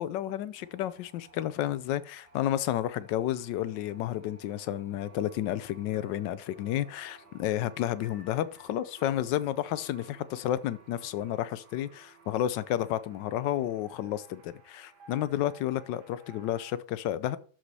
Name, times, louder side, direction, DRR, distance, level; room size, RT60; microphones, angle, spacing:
voice 1, 0.0-17.4, left 12 dB, 85° left, 1.3 m, -31 dB
sound 1, 0.5-16.7, right 4 dB, 70° right, 2.2 m, -57 dB
12.0 x 4.9 x 4.1 m
omnidirectional pair, 1.9 m